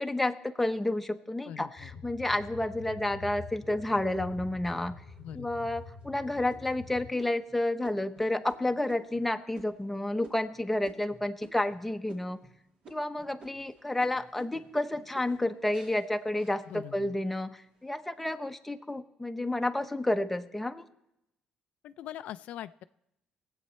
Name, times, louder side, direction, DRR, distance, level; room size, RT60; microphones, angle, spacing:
voice 1, 0.0-5.0 5.3-12.4 12.9-20.8, left 1 dB, 5° left, 7 dB, 0.8 m, -30 dB
voice 2, 1.5-1.9 5.2-5.7 16.7-17.2 21.8-22.8, left 11 dB, 70° left, 12 dB, 0.4 m, -43 dB
sound 1, 1.8-7.1, left 5 dB, 45° left, 1.0 m, -46 dB
sound 2, 3.6-4.5 5.1-5.2 5.7-6.0 6.5-11.8 12.1-12.6 12.8-17.2 17.6-18.2, right 3 dB, 50° right, 2.6 m, -54 dB
21.5 x 8.2 x 4.3 m, 0.84 s
cardioid pair, 120°, 2 cm